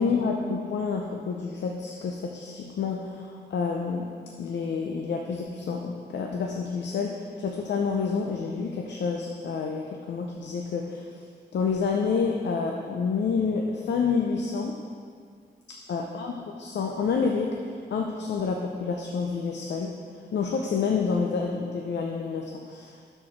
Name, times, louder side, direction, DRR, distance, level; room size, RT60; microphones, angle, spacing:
voice 1, 0.0-4.1 4.4-11.1 11.5-14.8 15.9-17.6 17.9-20.0 20.3-23.1, left 5 dB, 90° left, 1 dB, 0.6 m, -28 dB
12.0 x 4.5 x 4.5 m, 2.1 s
cardioid pair, 85°, 18 cm